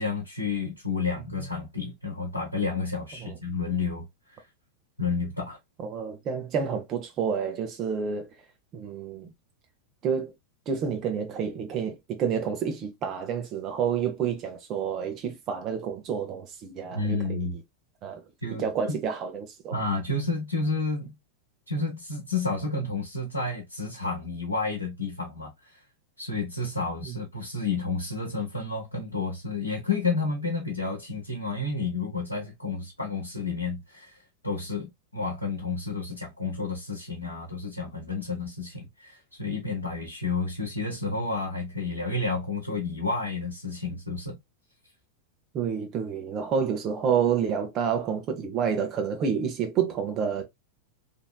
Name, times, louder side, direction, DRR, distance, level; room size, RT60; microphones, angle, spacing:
voice 1, 0.0-4.5 5.0-5.6 16.9-17.6 18.4-18.7 19.7-21.1 21.7-25.8 26.2-44.4, left 3 dB, 85° left, 1.0 m, -31 dB
voice 2, 5.8-8.3 8.7-9.3 10.0-10.3 10.7-17.5 18.0-18.2 18.6-19.7 27.0-27.1 45.5-50.4, right 7 dB, 35° right, 0.6 m, -29 dB
3.0 x 2.7 x 2.2 m
figure-of-eight pair, 90°, 0 cm